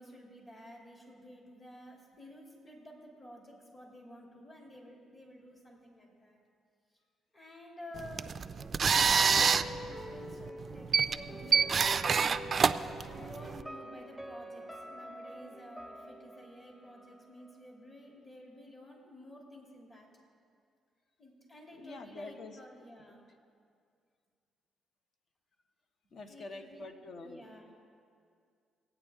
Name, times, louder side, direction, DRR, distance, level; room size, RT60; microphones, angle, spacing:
voice 1, 0.0-6.4 7.3-8.3 9.0-11.8 12.7-20.1 21.2-23.2 26.2-26.9 27.2-27.7, left 1 dB, 30° left, -1 dB, 2.6 m, -52 dB
sound 1, 8.0-13.6, right 6 dB, 45° right, 0.3 m, -28 dB
sound 2, 8.6-17.6 17.9-18.0, right 1 dB, 15° left, 1.2 m, -46 dB
voice 2, 21.7-22.6 26.1-27.4, left 3 dB, 55° left, 7 dB, 0.8 m, -46 dB
17.5 x 8.9 x 3.5 m, 2.3 s
cardioid pair, 90°, 0 cm